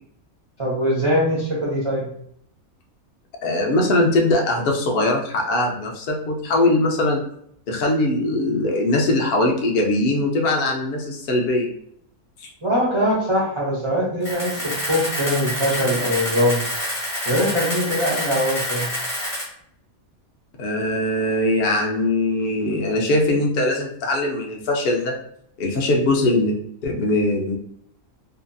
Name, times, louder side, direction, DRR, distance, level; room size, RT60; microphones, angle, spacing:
voice 1, 0.6-2.1 12.6-16.6 17.3-18.9, equal, 45° right, -7 dB, 0.3 m, -22 dB
voice 2, 3.4-7.2 7.7-11.7 12.4-12.5 20.6-25.1 25.6-26.5 26.8-27.6, left 2 dB, 70° left, 0 dB, 0.5 m, -21 dB
Camera, 14.2-19.4, left 1 dB, 25° left, 1.0 m, -27 dB
2.7 x 2.6 x 2.2 m, 0.67 s
omnidirectional pair, 1.5 m